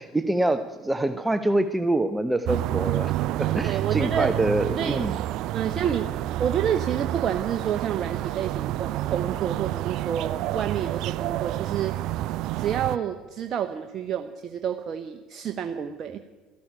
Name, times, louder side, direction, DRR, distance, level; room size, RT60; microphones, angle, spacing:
voice 1, 0.0-3.1 3.4-5.2, right 1 dB, 10° right, 10 dB, 0.9 m, -25 dB
sound 1, 2.4-13.0, right 14 dB, 65° right, 0.4 m, -29 dB
voice 2, 3.6-4.4 4.8-5.0 5.5-12.0 12.6-16.2, right 8 dB, 50° right, 7 dB, 0.9 m, -29 dB
13.5 x 11.5 x 8.8 m, 1.3 s
hypercardioid pair, 70°, 0 cm